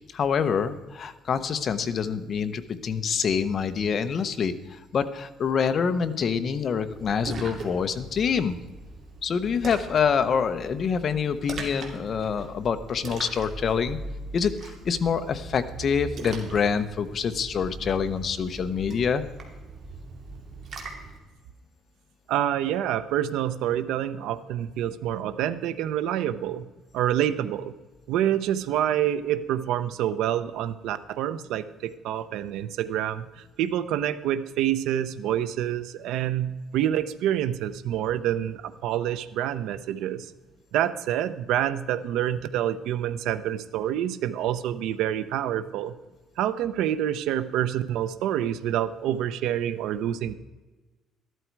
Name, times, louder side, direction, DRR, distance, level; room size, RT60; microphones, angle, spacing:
voice 1, 0.1-8.6 9.2-14.0 14.3-19.2, left 6 dB, 40° left, 9 dB, 0.9 m, -26 dB
Splash splatter, 6.9-21.2, right 3 dB, 45° right, 2.4 m, -40 dB
voice 2, 22.3-26.7 26.9-27.7 28.1-40.3 40.7-45.9 46.4-50.3, right 11 dB, 85° right, 13 dB, 0.7 m, -27 dB
13.5 x 12.5 x 4.6 m, 1.2 s
cardioid pair, 150°, 0 cm